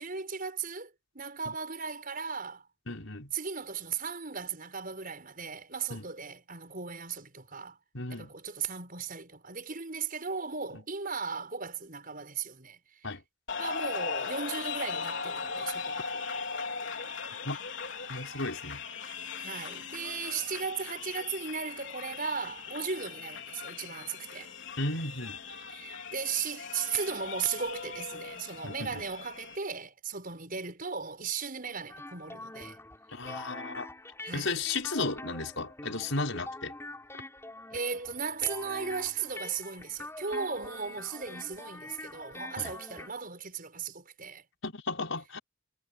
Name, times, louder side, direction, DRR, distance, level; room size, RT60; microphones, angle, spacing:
voice 1, 0.0-2.7 3.3-7.8 8.1-13.1 13.6-16.1 19.4-24.5 25.7-32.8 34.2-34.6 37.7-44.5, right 5 dB, 45° right, 6.3 m, -36 dB
voice 2, 2.9-3.3 5.9-6.1 7.9-8.3 13.0-13.2 17.4-17.6 18.1-18.8 24.8-25.4 28.6-29.0 33.1-33.9 34.3-36.7 42.6-42.7 44.6-45.4, left 3 dB, 85° left, 5.6 m, -34 dB
sound 1, 13.5-29.6, left 5 dB, 65° left, 4.1 m, -39 dB
sound 2, 31.9-43.1, left 2 dB, 15° left, 8.0 m, -45 dB
head